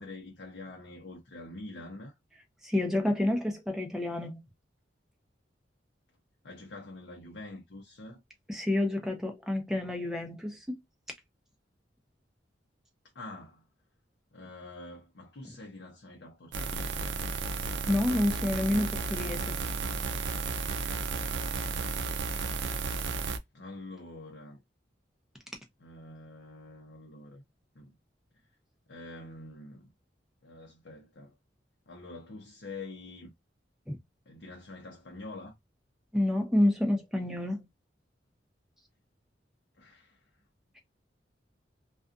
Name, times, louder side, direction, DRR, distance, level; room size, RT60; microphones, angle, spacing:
voice 1, 0.0-2.2 6.4-8.2 13.1-13.6 14.3-17.2 23.5-24.6 25.8-27.4 27.7-27.9 28.9-29.9 30.4-31.3 31.9-33.3 34.3-35.6 39.8-40.3, left 2 dB, 70° left, 0.6 m, -46 dB
voice 2, 2.6-4.4 8.5-10.8 17.9-19.6 33.9-34.0 36.1-37.7, left 1 dB, 5° right, 0.7 m, -29 dB
sound 1, 16.5-23.4, right 4 dB, 80° right, 0.5 m, -33 dB
2.5 x 2.3 x 2.4 m
head